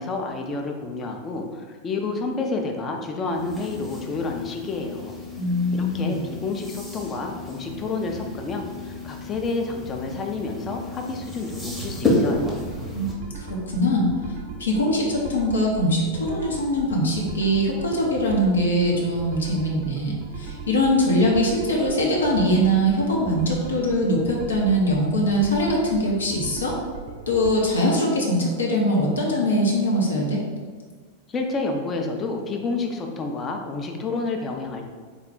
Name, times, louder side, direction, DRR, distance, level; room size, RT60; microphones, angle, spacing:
voice 1, 0.0-5.1 5.7-12.6 31.3-34.9, left 3 dB, 25° left, 2 dB, 0.5 m, -29 dB
sound 1, 3.3-13.1, left 2 dB, ahead, 0.8 m, -31 dB
voice 2, 5.4-6.1 12.9-13.1 13.4-14.1 14.6-26.8 27.3-30.4, equal, 70° left, -2 dB, 0.7 m, -22 dB
sound 2, 12.3-27.6, right 5 dB, 50° right, 0.5 m, -38 dB
3.6 x 2.3 x 3.6 m, 1.5 s
figure-of-eight pair, 90°, 0 cm